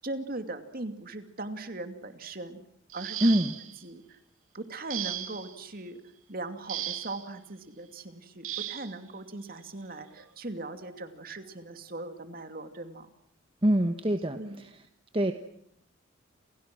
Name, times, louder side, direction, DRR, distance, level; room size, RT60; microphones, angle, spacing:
voice 1, 0.0-2.6 2.9-3.4 3.8-4.2 4.5-6.0 6.3-13.1 14.3-14.6, right 2 dB, 45° right, 8 dB, 2.7 m, -39 dB
sound 1, 2.9-3.8 4.9-5.6 6.7-7.3 8.4-8.9 10.1-10.3 10.8-11.0, right 12 dB, 85° right, 2.3 m, -36 dB
voice 2, 3.2-3.5 13.6-14.4 15.1-15.3, right 1 dB, 25° right, 7 dB, 1.2 m, -24 dB
30.0 x 28.5 x 6.3 m, 0.70 s
head